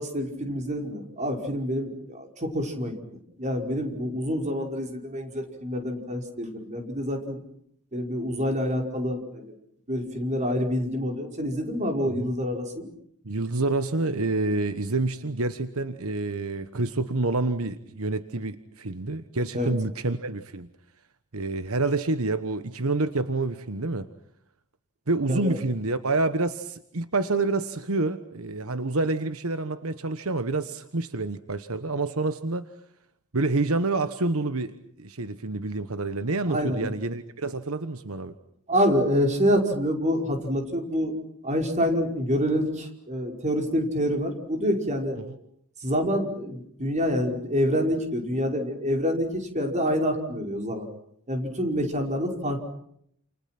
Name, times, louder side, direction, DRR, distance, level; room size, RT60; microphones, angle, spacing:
voice 1, 0.0-2.9 3.4-7.4 7.9-9.5 9.9-12.9 19.5-19.7 25.3-25.6 36.5-36.9 38.7-41.2 41.4-45.2 45.8-50.9 51.3-52.8, equal, 35° right, 3 dB, 5.2 m, -27 dB
voice 2, 13.2-20.7 21.3-24.1 25.1-32.7 33.3-38.3 45.2-45.4, right 2 dB, 75° right, 11 dB, 1.3 m, -28 dB
29.5 x 29.0 x 6.0 m, 0.71 s
head